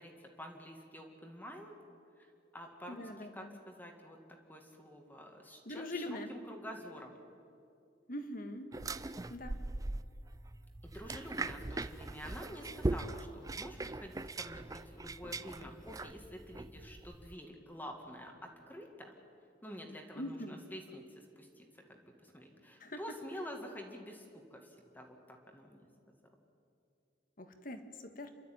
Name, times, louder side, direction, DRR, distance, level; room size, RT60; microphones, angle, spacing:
voice 1, 0.0-1.7 2.2-4.2 4.5-7.2 10.8-19.1 19.6-25.9, equal, 10° left, 2 dB, 2.0 m, -48 dB
voice 2, 2.9-3.5 5.7-6.3 8.1-8.7 9.3-9.6 20.2-20.6 22.8-23.0 27.4-28.3, left 1 dB, 55° left, 8 dB, 1.7 m, -42 dB
sound 1, 8.7-17.4, right 2 dB, 20° right, 0.5 m, -40 dB
28.5 x 12.5 x 9.2 m, 2.5 s
head